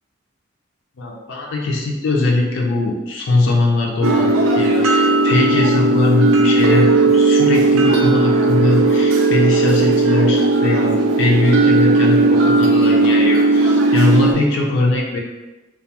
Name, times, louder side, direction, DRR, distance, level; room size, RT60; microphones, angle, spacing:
voice 1, 1.0-15.2, left 2 dB, 65° left, -1 dB, 0.4 m, -20 dB
sound 1, 4.0-14.3, right 2 dB, 85° right, 0.4 m, -15 dB
2.3 x 2.3 x 2.8 m, 1.1 s
head